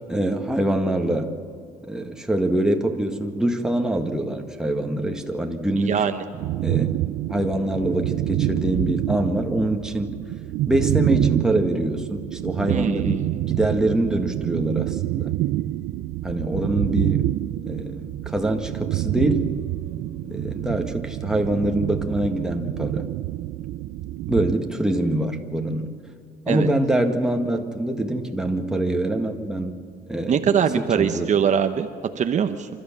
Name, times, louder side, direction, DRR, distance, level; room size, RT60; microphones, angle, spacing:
voice 1, 0.1-1.4 1.9-6.0 6.6-6.9 7.3-10.2 10.7-15.3 16.2-17.3 17.7-19.5 20.2-23.1 24.3-25.9 26.5-29.8 30.1-30.4 30.8-31.3, right 1 dB, 5° right, 3 dB, 1.8 m, -24 dB
sound 1, 6.4-24.6, right 15 dB, 85° right, 0.5 m, -27 dB
voice 2, 30.3-31.9 32.2-32.7, right 8 dB, 45° right, 8 dB, 1.0 m, -21 dB
27.5 x 13.5 x 7.4 m, 2.4 s
cardioid pair, 110°, 17 cm